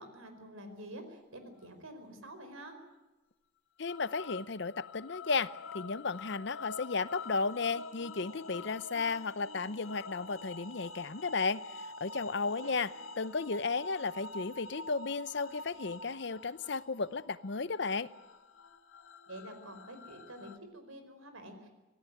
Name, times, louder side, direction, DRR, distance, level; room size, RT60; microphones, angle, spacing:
voice 1, 0.0-2.8 12.6-12.8 19.3-21.7, right 1 dB, 90° right, 8 dB, 4.8 m, -48 dB
voice 2, 3.8-5.5 5.7-12.9 13.2-18.1, left 4 dB, 55° left, 16 dB, 0.7 m, -34 dB
sound 1, 3.9-20.6, left 3 dB, 85° left, 1.4 m, -47 dB
25.5 x 16.5 x 9.3 m, 1.1 s
head